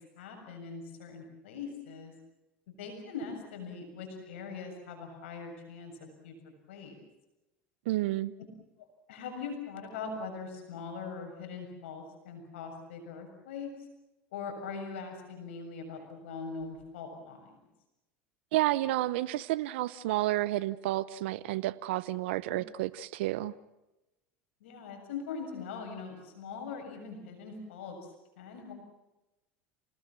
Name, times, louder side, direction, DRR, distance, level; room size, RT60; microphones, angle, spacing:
voice 1, 0.0-2.1 2.7-6.3 6.7-7.0 8.8-13.7 14.3-17.6 24.6-28.1 28.4-28.7, left 5 dB, 85° left, 4 dB, 7.2 m, -41 dB
voice 2, 7.9-8.3 18.5-23.5, right 16 dB, 80° right, 16 dB, 0.8 m, -30 dB
29.5 x 19.0 x 7.7 m, 0.98 s
hypercardioid pair, 90°, 6 cm